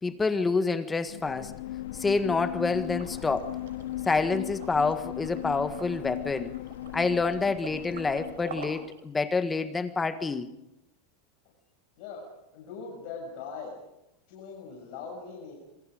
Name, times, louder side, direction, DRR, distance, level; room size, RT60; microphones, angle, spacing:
voice 1, 0.0-1.6 2.0-3.6 4.1-6.5 6.9-10.5, left 4 dB, 15° left, 1.6 m, -27 dB
sound 1, 1.1-8.9, left 15 dB, 70° left, 0.8 m, -38 dB
Liquid, 2.9-9.0, right 7 dB, 85° right, 5.2 m, -47 dB
voice 2, 12.0-13.7 14.3-15.5, left 5 dB, 55° left, 6.6 m, -41 dB
27.0 x 23.0 x 5.1 m
supercardioid pair, 135°, 0 cm